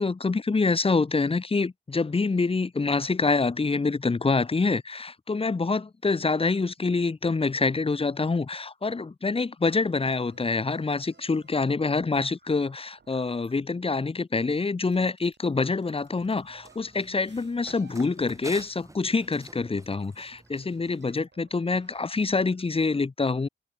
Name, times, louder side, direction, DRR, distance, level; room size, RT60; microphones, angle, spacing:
voice 1, 0.0-23.5, left 4 dB, 30° left, 0.7 m, -26 dB
sound 1, 10.1-13.6 14.0-22.4, right 5 dB, 65° right, 5.2 m, -60 dB
Run, 16.0-21.1, right 1 dB, 15° right, 3.3 m, -49 dB
cardioid pair, 65°, 20 cm